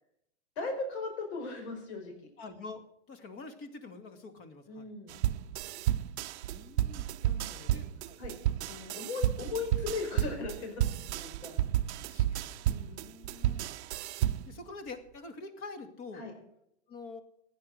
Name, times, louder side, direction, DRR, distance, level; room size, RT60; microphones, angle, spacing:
voice 1, 0.6-2.1 4.7-5.2 7.2-7.8 8.2-8.3 8.6-11.6 12.6-13.1 16.1-16.3, left 4 dB, 70° left, 4 dB, 5.1 m, -38 dB
voice 2, 2.4-4.9 6.5-7.1 7.7-8.2 12.1-13.6 14.5-16.3 16.9-17.2, left 3 dB, 35° left, 8 dB, 2.4 m, -46 dB
sound 1, 5.1-14.6, right 12 dB, 70° right, 0.7 m, -31 dB
16.0 x 9.9 x 6.6 m, 0.77 s
hypercardioid pair, 130°, 34 cm